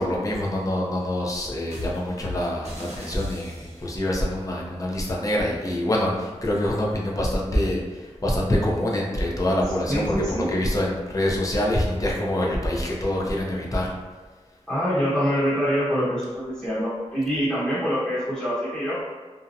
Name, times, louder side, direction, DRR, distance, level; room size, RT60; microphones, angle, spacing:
voice 1, 0.0-13.9, left 1 dB, 30° left, -3 dB, 0.5 m, -25 dB
sound 1, 1.7-4.0, left 1 dB, 65° right, 0.8 m, -37 dB
voice 2, 9.9-10.5 14.7-19.0, equal, 5° left, -12 dB, 0.9 m, -25 dB
2.6 x 2.1 x 2.5 m, 1.4 s
wide cardioid pair, 105°, 12 cm